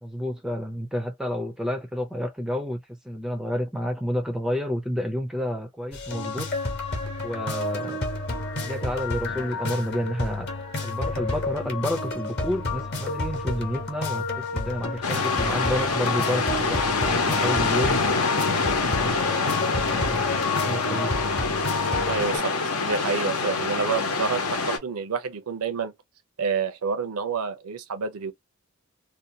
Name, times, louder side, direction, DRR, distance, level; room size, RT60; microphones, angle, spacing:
voice 1, 0.0-6.5 7.2-8.0 8.6-10.5 10.8-18.0 18.4-20.3 20.6-21.2, equal, 5° right, 0.4 m, -30 dB
sound 1, 5.9-22.4, left 3 dB, 50° left, 0.8 m, -30 dB
sound 2, 15.0-24.8, left 4 dB, 85° left, 0.8 m, -25 dB
voice 2, 22.1-25.9 26.4-28.3, right 5 dB, 85° right, 0.6 m, -28 dB
2.6 x 2.2 x 2.6 m
head